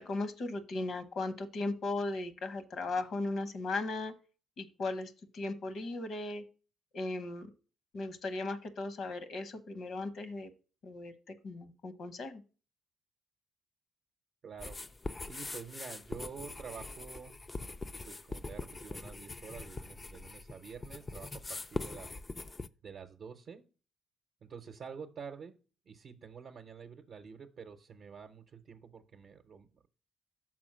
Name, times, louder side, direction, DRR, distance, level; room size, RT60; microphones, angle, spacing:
voice 1, 0.0-4.1 4.6-6.4 6.9-7.5 7.9-10.5 10.8-12.4, left 2 dB, 65° left, 10 dB, 1.0 m, -37 dB
voice 2, 14.4-14.8 15.2-17.3 18.1-22.1 22.8-23.6 24.4-25.6 25.9-29.9, right 6 dB, 55° right, 4 dB, 0.7 m, -48 dB
sound 1, 14.6-22.7, left 3 dB, 25° left, 0.3 m, -42 dB
6.0 x 4.2 x 6.2 m, 0.35 s
cardioid pair, 90°, 0 cm